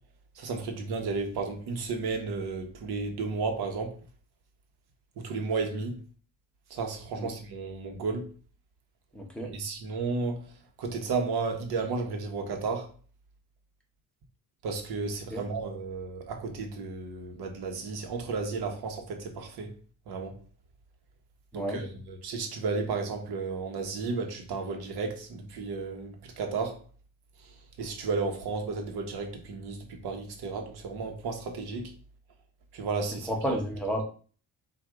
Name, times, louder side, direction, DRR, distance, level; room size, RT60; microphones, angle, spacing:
voice 1, 0.4-3.9 5.2-6.0 6.7-8.2 9.5-10.5 10.8-12.9 14.6-19.7 20.1-20.3 21.5-26.8 27.8-31.9 32.7-33.3, right 4 dB, 75° right, 1.1 m, -33 dB
voice 2, 9.1-9.5 15.3-15.4 21.5-21.8 33.3-34.0, right 1 dB, 5° left, 0.9 m, -31 dB
4.6 x 2.6 x 3.7 m
cardioid pair, 125°, 39 cm